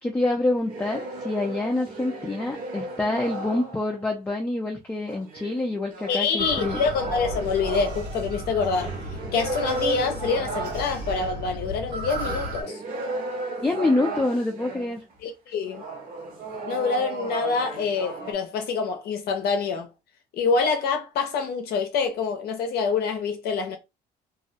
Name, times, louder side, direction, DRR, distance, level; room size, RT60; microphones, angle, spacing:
voice 1, 0.0-6.8 13.6-15.0, left 2 dB, 10° left, 0.4 m, -26 dB
sound 1, 0.6-4.1 5.1-15.0 15.7-18.3, right 3 dB, 55° right, 1.0 m, -35 dB
voice 2, 6.1-12.8 15.2-15.8 16.7-19.9 20.3-23.8, left 5 dB, 70° left, 0.5 m, -26 dB
sound 2, 6.4-12.6, right 1 dB, 80° right, 1.2 m, -34 dB
2.3 x 2.0 x 2.6 m
cardioid pair, 110°, 17 cm